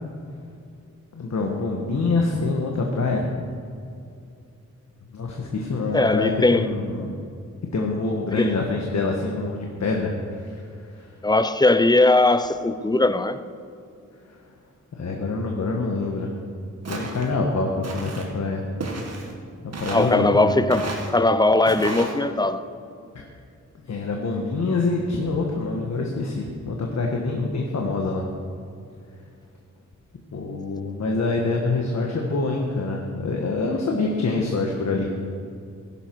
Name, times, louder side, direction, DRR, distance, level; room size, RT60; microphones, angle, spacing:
voice 1, 1.1-3.3 5.1-7.2 7.7-11.1 14.2-14.4 14.9-16.3 16.9-18.6 19.6-20.5 23.1-23.2 23.8-28.2 30.3-35.1, left 3 dB, 60° left, 1.3 m, -26 dB
voice 2, 5.9-6.7 8.3-8.5 11.2-13.4 19.9-22.6, left 2 dB, 15° left, 0.5 m, -19 dB
Walk footsteps, 16.8-17.3 17.8-18.3 18.8-19.3 19.7-20.1 20.7-21.1 21.6-22.1, right 3 dB, 55° right, 1.9 m, -32 dB
16.0 x 11.0 x 4.6 m
wide cardioid pair, 140°, 31 cm